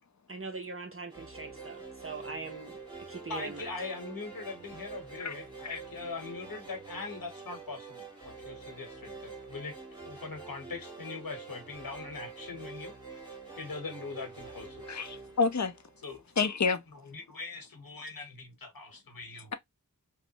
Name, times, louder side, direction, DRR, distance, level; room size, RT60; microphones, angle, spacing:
voice 1, 0.3-2.8 3.1-3.6, right 3 dB, 40° right, 0.6 m, -41 dB
sound 1, 1.1-16.4, right 4 dB, 15° right, 1.4 m, -46 dB
voice 2, 3.3-15.0 16.0-16.2 16.9-19.5, left 4 dB, 75° left, 1.0 m, -42 dB
voice 3, 14.9-15.7 16.4-16.8, left 5 dB, 55° left, 0.6 m, -28 dB
3.0 x 2.1 x 2.7 m
wide cardioid pair, 50°, 35 cm